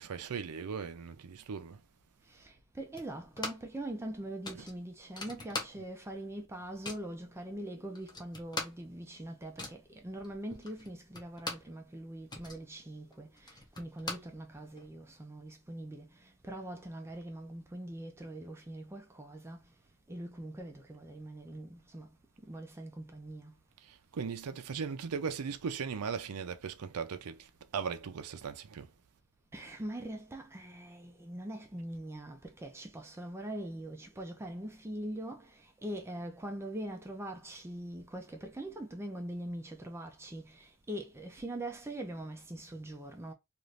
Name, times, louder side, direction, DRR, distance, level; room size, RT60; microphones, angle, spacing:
voice 1, 0.0-1.8 4.6-4.7 5.8-5.9 24.1-27.4 27.7-28.9, right 6 dB, 90° right, 0.5 m, -38 dB
voice 2, 2.4-16.1 16.4-19.6 20.1-22.1 22.5-23.5 29.5-35.5 35.8-43.3, right 1 dB, 10° right, 0.4 m, -42 dB
sound 1, 3.0-3.8 4.1-4.2 4.4-6.1 6.4-7.1 7.7-7.8 8.0-11.8 12.1-14.9, left 2 dB, 20° left, 0.7 m, -42 dB
2.5 x 2.5 x 3.1 m
head